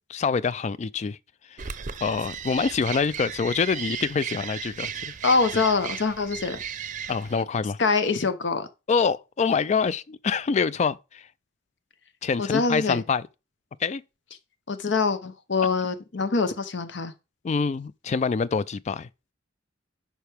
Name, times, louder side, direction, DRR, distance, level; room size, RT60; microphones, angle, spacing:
voice 1, 0.1-1.2 1.5-1.6 2.0-5.1 7.1-7.8 8.9-11.2 12.2-13.2 13.8-14.0 17.4-19.1, left 5 dB, 35° left, 0.3 m, -25 dB
sound 1, 1.6-7.4, right 7 dB, 40° right, 0.6 m, -35 dB
voice 2, 5.2-6.6 7.8-8.7 12.4-13.0 14.7-17.1, left 4 dB, 65° left, 0.8 m, -24 dB
9.2 x 5.7 x 3.4 m
head